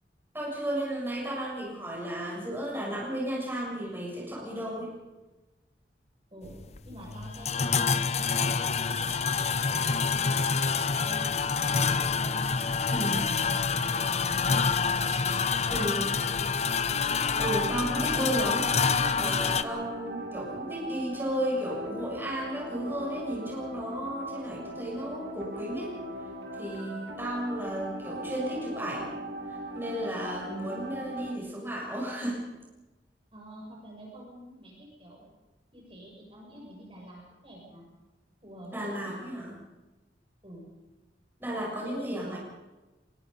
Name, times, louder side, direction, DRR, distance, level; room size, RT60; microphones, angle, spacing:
voice 1, 0.3-4.9 12.9-13.4 15.7-16.1 17.4-18.7 19.1-26.0 26.6-29.2 29.5-32.5 38.7-39.5 41.4-42.4, right 1 dB, 10° right, -3 dB, 7.2 m, -33 dB
voice 2, 4.5-4.9 6.3-6.6 6.8-9.2 9.5-12.7 13.4-15.1 15.5-16.7 30.4-30.9 33.3-35.3 35.7-37.9 38.4-39.1 40.4-40.7 41.8-42.4, equal, 30° right, -2 dB, 7.0 m, -47 dB
sound 1, 6.4-19.6, left 5 dB, 40° left, 0.8 m, -27 dB
sound 2, 16.9-31.3, right 1 dB, 70° right, 4.7 m, -39 dB
25.0 x 23.0 x 5.4 m, 1.1 s
head